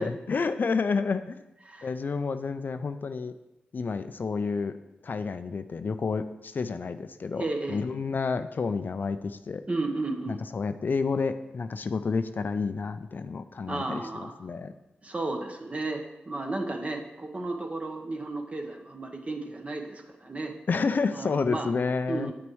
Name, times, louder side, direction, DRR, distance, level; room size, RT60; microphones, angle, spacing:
voice 1, 0.0-1.4 1.8-3.3 3.7-4.8 5.0-9.6 10.3-14.7 20.7-22.3, left 4 dB, 55° left, 10 dB, 0.4 m, -30 dB
voice 2, 7.4-7.8 9.7-10.4 13.7-14.4 15.0-20.5 21.1-21.7 22.1-22.3, right 2 dB, 35° right, 4 dB, 1.1 m, -33 dB
8.7 x 6.1 x 3.1 m, 0.97 s
cardioid pair, 45°, 4 cm